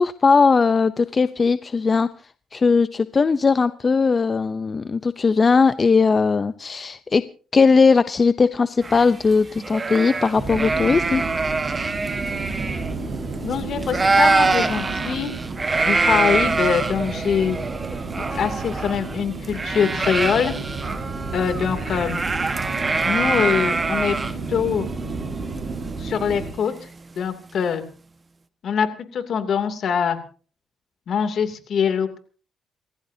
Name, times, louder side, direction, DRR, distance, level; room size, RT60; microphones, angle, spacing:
voice 1, 0.0-2.1 2.5-7.2 7.5-11.2, left 4 dB, 35° left, 13 dB, 0.6 m, -18 dB
sound 1, 8.8-13.5 13.8-26.7, right 3 dB, 30° right, 1.4 m, -25 dB
sound 2, 10.3-26.5, right 4 dB, 45° right, 4.7 m, -31 dB
voice 2, 13.4-15.3 15.8-17.6 18.2-20.5 21.3-22.2 23.0-24.2 24.5-24.9 26.0-26.7 27.2-27.8 28.6-28.9 29.1-30.2 31.1-32.2, left 7 dB, 60° left, 7 dB, 2.8 m, -23 dB
29.0 x 14.5 x 2.8 m, 0.40 s
cardioid pair, 90°, 0 cm